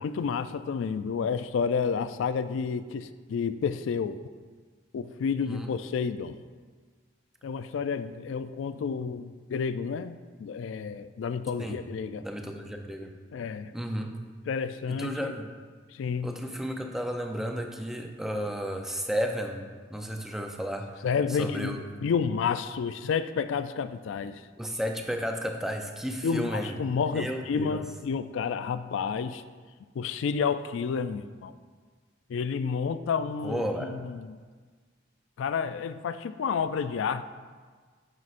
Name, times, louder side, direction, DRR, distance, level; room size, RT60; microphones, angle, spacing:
voice 1, 0.0-4.2 4.9-6.4 7.4-12.3 13.3-13.7 14.5-15.3 15.9-16.3 21.0-24.4 26.2-29.4 30.0-31.5 32.3-34.4 35.4-37.2, left 6 dB, 75° left, 12 dB, 0.3 m, -30 dB
voice 2, 12.2-13.1 13.7-14.2 14.9-15.5 16.2-21.1 21.4-21.8 24.6-26.8 27.1-27.8 33.4-33.9, equal, ahead, 3 dB, 0.5 m, -33 dB
9.5 x 6.2 x 2.5 m, 1.5 s
head